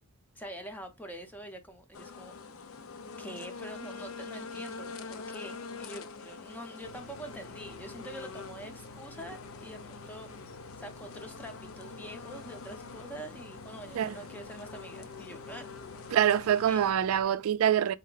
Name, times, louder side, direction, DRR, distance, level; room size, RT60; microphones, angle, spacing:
voice 1, 0.3-2.3 3.2-15.7 16.7-16.8, right 1 dB, 10° left, 0.7 m, -45 dB
sound 1, 1.9-16.9, left 4 dB, 75° left, 0.5 m, -45 dB
sound 2, 6.8-17.2, left 1 dB, 90° left, 0.9 m, -52 dB
voice 2, 16.1-17.9, right 9 dB, 80° right, 0.3 m, -25 dB
4.4 x 2.1 x 3.8 m
head